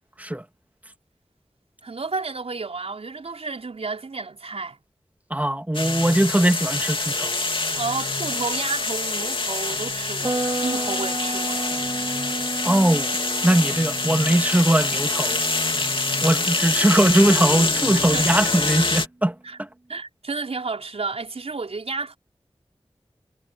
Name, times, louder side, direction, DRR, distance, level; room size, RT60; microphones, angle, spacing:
voice 1, 1.8-4.8 7.8-11.6 17.9-18.3 19.4-19.6 19.9-22.2, right 4 dB, 85° right, 5.0 m, -31 dB
voice 2, 5.3-7.4 12.6-13.2 13.4-15.4 16.2-19.7, right 1 dB, 15° right, 2.3 m, -20 dB
sound 1, 5.7-19.1, left 3 dB, 55° left, 3.0 m, -25 dB
sound 2, 10.2-18.2, right 2 dB, 35° right, 3.8 m, -33 dB
wide cardioid pair, 75°, 10 cm